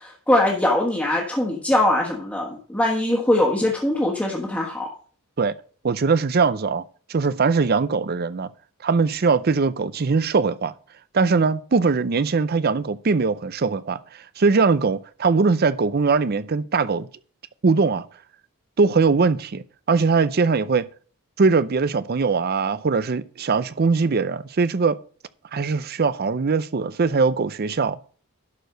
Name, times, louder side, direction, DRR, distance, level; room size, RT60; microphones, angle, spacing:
voice 1, 0.0-4.9, left 1 dB, 5° left, 1.4 m, -22 dB
voice 2, 5.8-6.8 7.1-8.5 8.8-10.7 11.1-17.1 17.6-18.1 18.8-20.8 21.4-25.0 25.5-28.0, right 4 dB, 45° right, 0.5 m, -21 dB
11.5 x 4.6 x 6.5 m
head